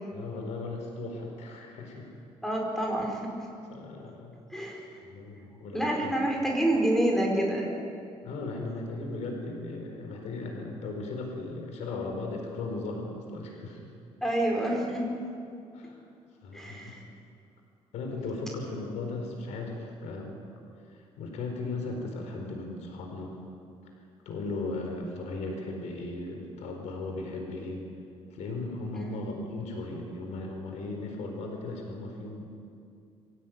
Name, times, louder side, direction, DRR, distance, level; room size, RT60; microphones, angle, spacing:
voice 1, 0.1-2.2 3.7-4.3 5.0-6.4 8.2-13.9 15.7-16.0 16.4-16.9 17.9-20.3 20.9-23.4 24.2-27.8 28.3-32.4, left 2 dB, 85° left, 2 dB, 4.4 m, -37 dB
voice 2, 2.4-3.3 4.5-5.0 5.7-7.8 14.2-15.1 16.5-17.0 28.9-29.2, right 1 dB, 5° left, 0 dB, 4.7 m, -28 dB
23.5 x 16.5 x 9.3 m, 2.5 s
cardioid pair, 150°, 11 cm